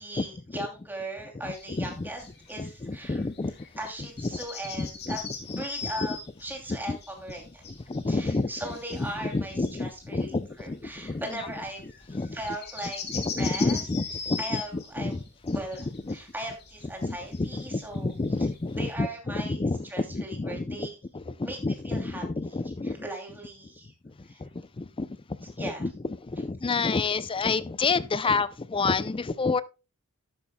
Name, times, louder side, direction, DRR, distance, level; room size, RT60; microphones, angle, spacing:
voice 1, 0.0-3.2 3.8-5.2 5.6-7.6 8.0-11.8 12.3-13.0 13.4-13.8 14.4-15.2 15.5-15.8 16.1-18.1 18.8-19.6 19.9-21.0 21.4-21.6 21.8-22.6 22.8-23.9 24.3-24.4 25.6-25.9, right 1 dB, 10° right, 2.8 m, -38 dB
sound 1, 1.4-18.9, left 5 dB, 50° left, 2.4 m, -41 dB
voice 2, 1.4-2.1 2.6-3.5 4.2-4.3 4.8-5.2 5.5-5.9 6.7-7.0 7.9-8.5 9.0-11.2 12.1-12.4 13.1-15.6 16.1-16.2 17.0-20.9 21.1-23.1 24.0-25.1 25.4-25.9 26.2-29.6, left 3 dB, 25° left, 0.5 m, -29 dB
12.5 x 10.5 x 2.3 m
head